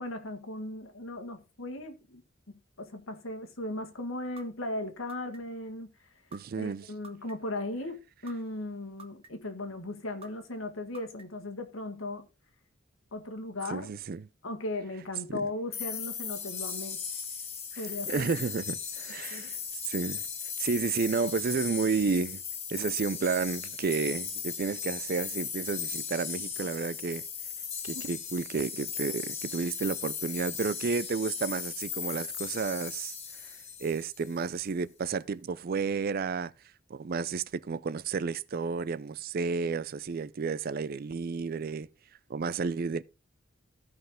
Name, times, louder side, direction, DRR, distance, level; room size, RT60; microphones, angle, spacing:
voice 1, 0.0-2.2 2.5-5.9 6.6-12.3 13.1-13.9 14.4-17.0 17.8-18.3 19.3-19.5 27.9-28.0, left 2 dB, 85° left, 1.7 m, -37 dB
sound 1, 4.4-4.5 5.1-5.6 6.3-6.4 7.0-7.6 8.3-8.4 9.0-9.5 10.2-10.3 10.9-11.5, right 3 dB, 30° right, 1.0 m, -48 dB
voice 2, 6.3-6.9 13.7-14.3 15.3-15.4 18.1-19.6 19.9-20.2 20.6-22.4 22.7-27.2 27.8-33.1 33.8-36.5 36.9-41.9 42.3-43.0, right 5 dB, 45° right, 0.4 m, -31 dB
sound 2, 15.7-34.4, left 7 dB, 30° left, 1.5 m, -37 dB
14.5 x 5.6 x 3.7 m
head